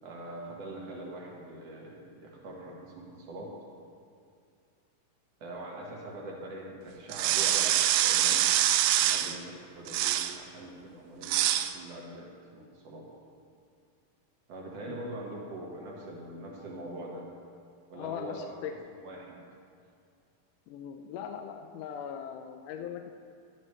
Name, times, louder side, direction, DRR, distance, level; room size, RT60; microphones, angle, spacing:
voice 1, 0.0-3.5 5.4-8.5 8.9-11.4 11.7-13.1 14.5-17.2 17.9-18.6 19.0-19.4, right 1 dB, 55° right, -3 dB, 2.6 m, -43 dB
sound 1, 7.1-9.4 9.9-10.4 11.2-11.7, right 12 dB, 85° right, 2.1 m, -25 dB
voice 2, 14.9-15.2 18.0-18.7 20.7-23.2, left 8 dB, 85° left, 4 dB, 2.1 m, -40 dB
12.5 x 11.0 x 3.3 m, 2.3 s
omnidirectional pair, 3.7 m